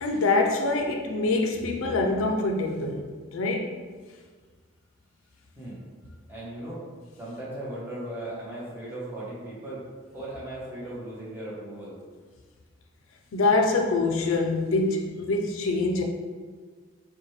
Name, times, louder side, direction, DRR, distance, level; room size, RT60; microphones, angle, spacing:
voice 1, 0.0-3.0 3.3-3.7 13.3-16.0, left 3 dB, 90° left, 2 dB, 0.5 m, -25 dB
voice 2, 6.3-6.8 7.2-9.8 10.1-12.0, right 1 dB, 10° right, -8 dB, 1.0 m, -37 dB
5.0 x 2.2 x 3.1 m, 1.5 s
head